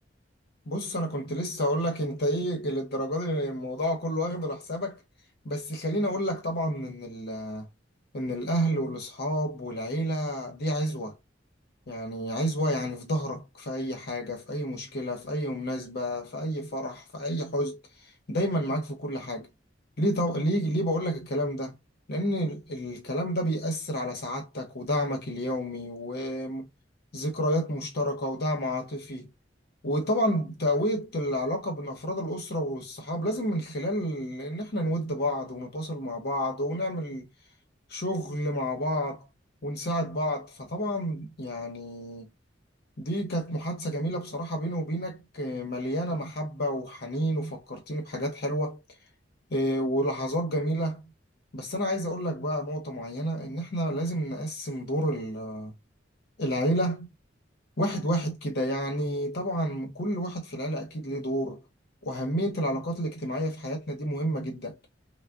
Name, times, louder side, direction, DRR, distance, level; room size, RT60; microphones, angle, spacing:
voice 1, 0.7-5.0 5.4-7.7 8.1-11.2 11.9-17.8 18.3-19.5 20.0-21.8 22.1-26.7 27.1-29.3 29.8-37.3 37.9-39.3 39.6-42.3 43.0-48.8 49.5-51.0 51.5-55.8 56.4-57.1 57.8-61.6 62.0-64.8, equal, 60° left, 0.9 m, -30 dB
3.5 x 2.2 x 2.4 m
head